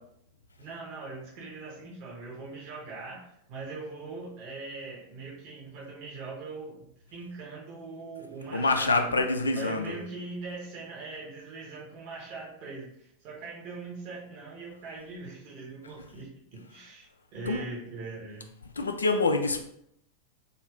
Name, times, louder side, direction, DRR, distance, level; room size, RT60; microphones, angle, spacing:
voice 1, 0.6-9.2 9.5-16.3 16.7-18.5, right 3 dB, 45° right, -4 dB, 0.8 m, -41 dB
voice 2, 8.5-9.9 17.5-17.6 18.8-19.6, left 3 dB, 75° left, 5 dB, 0.4 m, -26 dB
2.6 x 2.3 x 3.2 m, 0.75 s
figure-of-eight pair, 90°, 0 cm